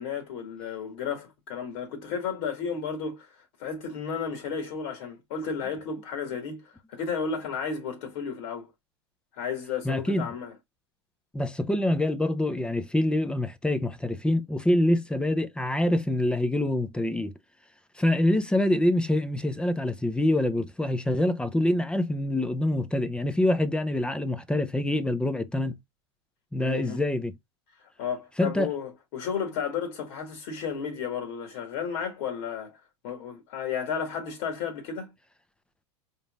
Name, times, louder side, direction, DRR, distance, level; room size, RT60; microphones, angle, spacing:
voice 1, 0.0-3.3 3.6-8.7 9.4-10.6 26.6-27.0 28.0-32.8 33.0-35.1, left 6 dB, 60° left, 1.9 m, -33 dB
voice 2, 9.8-10.3 11.3-17.3 18.0-25.8 26.5-27.3 28.4-28.7, left 1 dB, 5° left, 0.7 m, -25 dB
5.3 x 3.9 x 2.4 m
hypercardioid pair, 100°, 15 cm